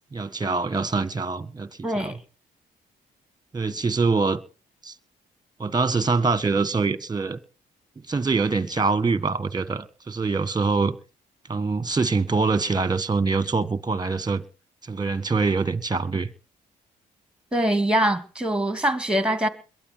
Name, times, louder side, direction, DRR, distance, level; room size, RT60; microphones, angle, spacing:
voice 1, 0.1-1.7 2.0-2.1 3.5-4.4 4.8-4.9 5.6-7.4 8.1-11.0 11.5-14.4 14.8-16.3, right 4 dB, 20° right, 1.6 m, -24 dB
voice 2, 1.8-2.2 17.5-19.5, right 1 dB, 5° right, 2.6 m, -23 dB
22.0 x 11.0 x 4.5 m
hypercardioid pair, 45°, 21 cm